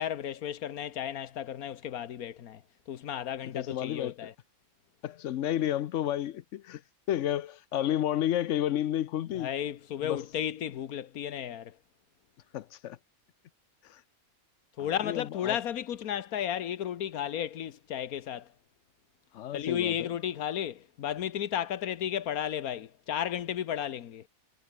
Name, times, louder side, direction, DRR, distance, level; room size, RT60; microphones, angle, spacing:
voice 1, 0.0-4.3 9.3-11.8 14.8-18.5 19.5-24.2, left 10 dB, 85° left, 1.4 m, -33 dB
voice 2, 3.5-4.3 5.0-6.8 7.1-9.5 10.0-10.2 12.5-13.0 13.8-14.0 14.8-15.6 19.3-20.1, left 12 dB, 65° left, 0.9 m, -31 dB
omnidirectional pair, 1.5 m